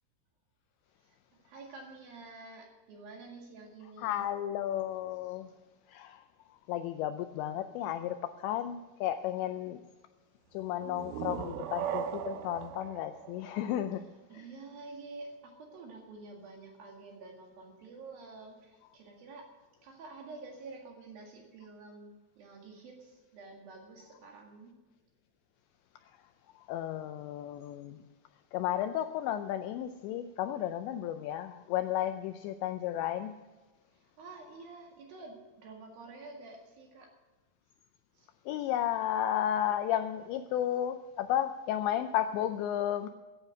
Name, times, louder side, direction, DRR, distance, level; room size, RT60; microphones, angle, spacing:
voice 1, 1.0-4.3 5.2-5.4 14.3-19.5 19.8-24.8 33.9-37.1 38.1-38.3, right 3 dB, 55° right, 1 dB, 3.2 m, -49 dB
voice 2, 4.0-5.5 5.9-6.2 6.7-9.8 10.5-14.1 14.3-14.5 26.7-28.0 28.5-33.4 38.5-43.1, left 11 dB, 85° left, 9 dB, 2.5 m, -33 dB
sound 1, 10.8-14.4, right 9 dB, 80° right, 3.2 m, -39 dB
14.5 x 9.5 x 6.4 m, 1.2 s
omnidirectional pair, 5.7 m